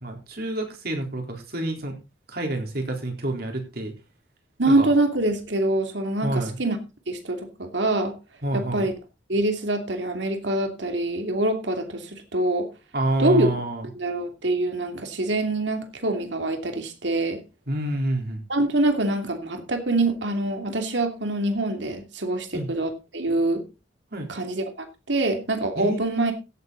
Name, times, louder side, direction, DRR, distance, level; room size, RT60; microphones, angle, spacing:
voice 1, 0.0-2.0 2.3-3.9 4.7-4.9 6.2-6.6 8.4-8.9 12.9-13.9 17.7-18.4 22.5-22.7 24.1-24.3 25.8-26.3, right 1 dB, 55° right, 3 dB, 3.9 m, -28 dB
voice 2, 4.6-6.8 7.1-8.2 8.5-8.9 9.3-12.7 13.2-13.5 13.9-17.4 18.5-23.6 24.3-26.3, right 2 dB, 70° right, 5 dB, 2.8 m, -25 dB
16.0 x 8.4 x 4.0 m, 0.29 s
head